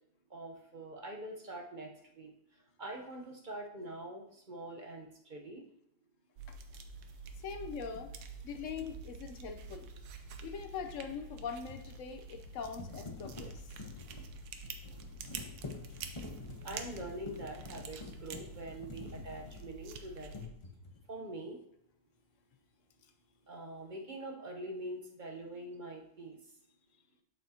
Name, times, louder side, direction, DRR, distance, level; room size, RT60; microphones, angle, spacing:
voice 1, 0.3-1.9 2.1-2.3 2.8-5.6 16.6-20.4 21.1-21.6 23.5-26.4, right 1 dB, 40° right, 1 dB, 0.8 m, -44 dB
sound 1, 6.4-20.5, right 3 dB, 80° right, 1.2 m, -48 dB
voice 2, 7.4-8.1 8.4-9.9 10.4-13.7, left 6 dB, 60° left, 6 dB, 0.9 m, -42 dB
sound 2, 7.9-8.1 11.2-19.9 20.3-21.1, left 3 dB, 25° left, 0.8 m, -48 dB
7.5 x 6.7 x 2.8 m, 0.74 s
omnidirectional pair, 1.7 m